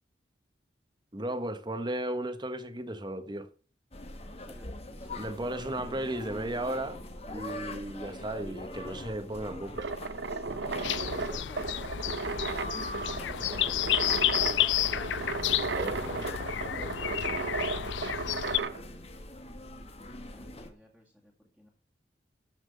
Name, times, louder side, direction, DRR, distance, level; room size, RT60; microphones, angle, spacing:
voice 1, 1.1-3.5 5.2-7.0 7.3-9.9 15.6-16.4 16.7-17.3, right 1 dB, 25° right, 1.2 m, -35 dB
sound 1, 3.9-20.7, left 1 dB, 35° left, 1.6 m, -43 dB
voice 2, 4.3-6.7 8.7-9.1 9.6-9.8 10.5-12.3 13.0-14.2 18.0-18.9 20.1-21.7, equal, 5° left, 2.3 m, -53 dB
sound 2, 9.7-18.8, right 4 dB, 75° right, 0.7 m, -35 dB
sound 3, 10.8-18.6, left 12 dB, 85° left, 0.4 m, -31 dB
13.5 x 5.9 x 6.6 m
head